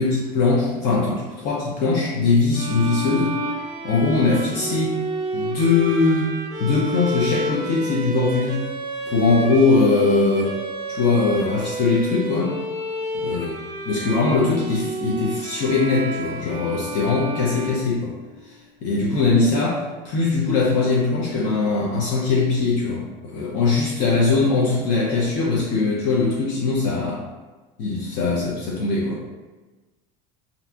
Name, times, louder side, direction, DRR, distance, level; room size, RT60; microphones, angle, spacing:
voice 1, 0.0-3.4 3.8-5.0 5.3-6.3 6.6-8.6 9.1-10.5 10.9-12.6 13.1-13.5 13.9-18.1 18.8-27.2 27.8-29.2, left 3 dB, 55° left, -4 dB, 0.5 m, -21 dB
sound 1, 2.5-18.2, right 1 dB, 40° right, 0.5 m, -30 dB
2.6 x 2.4 x 2.3 m, 1.2 s
supercardioid pair, 145°, 17 cm